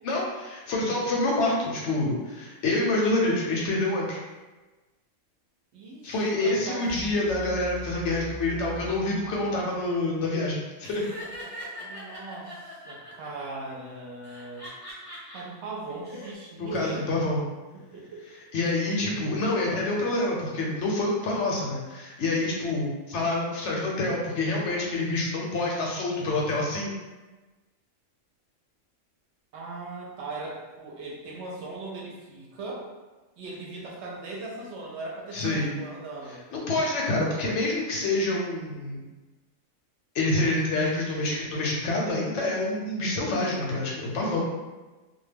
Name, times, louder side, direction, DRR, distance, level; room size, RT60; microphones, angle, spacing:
voice 1, 0.0-4.2 6.0-10.6 10.9-11.0 16.6-17.4 18.5-26.9 35.3-35.7 36.5-39.0 40.1-44.4, left 2 dB, 70° left, -3 dB, 0.8 m, -27 dB
voice 2, 5.7-6.9 11.8-14.7 15.3-17.1 17.7-18.3 29.5-32.9 33.4-36.4 43.0-43.4, right 3 dB, 70° right, -3 dB, 0.8 m, -39 dB
sound 1, 6.8-9.8, right 3 dB, 35° right, 0.4 m, -41 dB
Laughter, 10.8-13.4 14.2-15.4 15.9-16.3, equal, 25° left, 0.6 m, -41 dB
2.2 x 2.2 x 3.3 m, 1.2 s
omnidirectional pair, 1.3 m